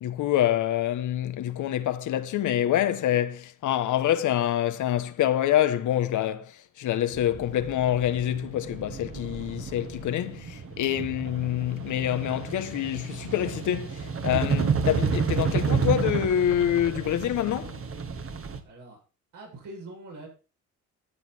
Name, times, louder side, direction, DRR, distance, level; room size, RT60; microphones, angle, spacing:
voice 1, 0.0-17.8, left 11 dB, 80° left, 1.2 m, -26 dB
sound 1, 7.1-18.6, right 5 dB, 45° right, 1.8 m, -31 dB
voice 2, 18.6-19.0 19.3-20.3, right 2 dB, 80° right, 7.6 m, -43 dB
13.5 x 7.5 x 4.5 m
cardioid pair, 90°, 30 cm